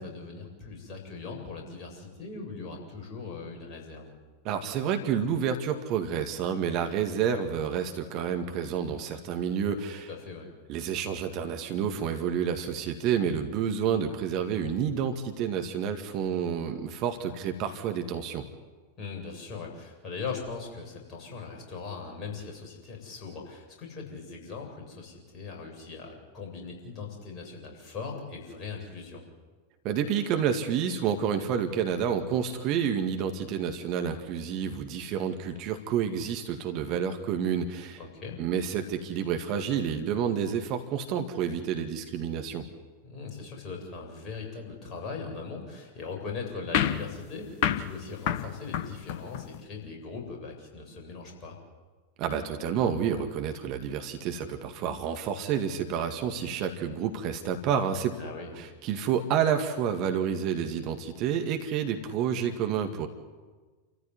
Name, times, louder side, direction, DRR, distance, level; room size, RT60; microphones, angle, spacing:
voice 1, 0.0-4.1 10.1-10.5 19.0-29.2 38.0-38.4 43.0-51.6 58.2-58.5, left 4 dB, 30° left, 0 dB, 7.9 m, -40 dB
voice 2, 4.4-10.1 10.7-18.5 29.8-38.0 38.4-42.6 52.2-58.1 58.6-63.1, right 8 dB, 40° right, 6 dB, 2.0 m, -29 dB
sound 1, 46.7-49.6, left 9 dB, 45° left, 1.2 m, -30 dB
29.5 x 14.5 x 9.8 m, 1.4 s
figure-of-eight pair, 90°, 0 cm